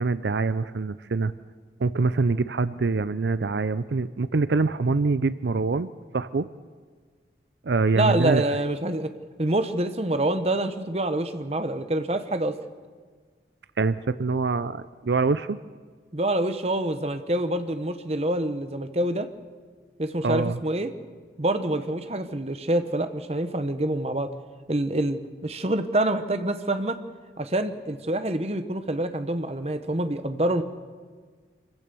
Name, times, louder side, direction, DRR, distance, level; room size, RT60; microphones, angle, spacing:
voice 1, 0.0-1.3 1.8-5.9 6.1-6.5 7.6-8.4 13.8-15.6 20.2-20.6, right 4 dB, 80° right, 14 dB, 0.5 m, -24 dB
voice 2, 7.9-9.1 9.4-12.6 16.1-19.3 20.0-20.9 21.4-24.3 24.7-27.0 27.4-30.6, right 1 dB, 35° right, 9 dB, 1.1 m, -26 dB
25.5 x 15.5 x 7.0 m, 1.5 s
head